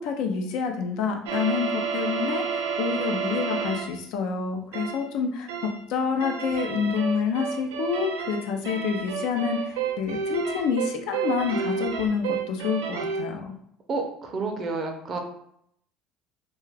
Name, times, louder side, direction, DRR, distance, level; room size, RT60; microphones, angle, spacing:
voice 1, 0.0-13.6, left 6 dB, 75° left, 4 dB, 0.4 m, -28 dB
sound 1, 1.3-4.0 4.7-5.1 5.5-5.8 6.2-13.3, right 6 dB, 90° right, 0.3 m, -30 dB
voice 2, 13.9-15.2, right 3 dB, 40° right, 4 dB, 0.6 m, -30 dB
2.3 x 2.2 x 3.2 m, 0.71 s
supercardioid pair, 95°, 0 cm